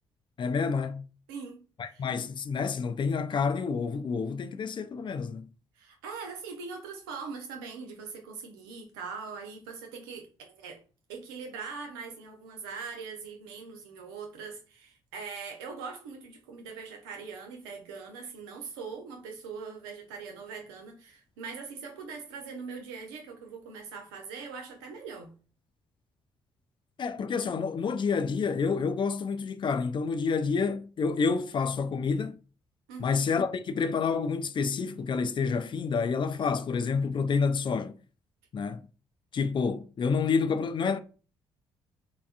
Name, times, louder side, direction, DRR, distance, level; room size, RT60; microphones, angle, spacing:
voice 1, 0.4-1.0 1.8-5.5 27.0-32.4 33.0-38.0 38.5-38.8 39.3-41.0, left 5 dB, 40° left, 0.4 m, -28 dB
voice 2, 1.3-1.6 1.9-2.1 5.8-10.8 11.1-25.3 32.9-33.2, right 5 dB, 85° right, 0.6 m, -41 dB
3.5 x 2.1 x 2.4 m
hypercardioid pair, 45°, 13 cm